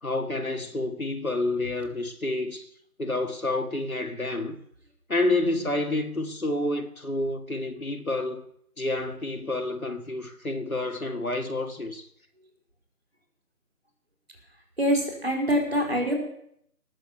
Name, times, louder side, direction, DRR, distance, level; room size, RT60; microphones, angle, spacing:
voice 1, 0.0-2.7 3.0-4.6 5.1-8.5 8.8-12.1, left 2 dB, 60° left, 1.8 m, -29 dB
voice 2, 14.8-16.1, equal, 40° right, 4.2 m, -24 dB
18.5 x 7.5 x 6.7 m
figure-of-eight pair, 175°, 48 cm